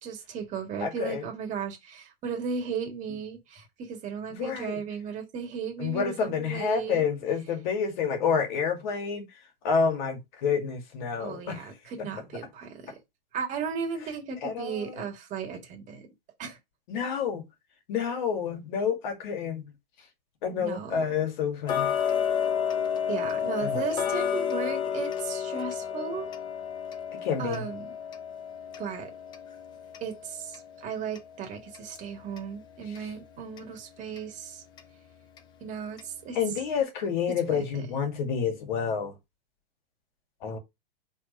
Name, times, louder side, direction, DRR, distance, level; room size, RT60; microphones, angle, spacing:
voice 1, 0.0-7.0 11.2-13.0 13.3-16.1 16.4-16.6 20.6-21.0 23.1-26.3 27.4-27.8 28.8-29.1 30.0-34.6 35.6-36.4 37.5-37.6, right 6 dB, 25° right, 1.9 m, -35 dB
voice 2, 0.8-1.3 4.3-4.8 5.8-9.3 9.6-11.7 12.0-12.1 14.4-15.0 16.9-17.4 17.9-19.7 20.4-21.9 23.6-23.8 27.2-27.6 32.9-33.0 36.3-39.1 40.4-40.6, left 6 dB, 50° left, 2.3 m, -29 dB
Tick-tock, 21.7-32.5 32.9-33.0 33.6-33.7 34.2-34.3 34.8-34.9 35.4-35.5 36.0-36.1 36.6-36.7, left 8 dB, 15° left, 0.5 m, -31 dB
5.0 x 4.2 x 5.3 m
hypercardioid pair, 150°, 30 cm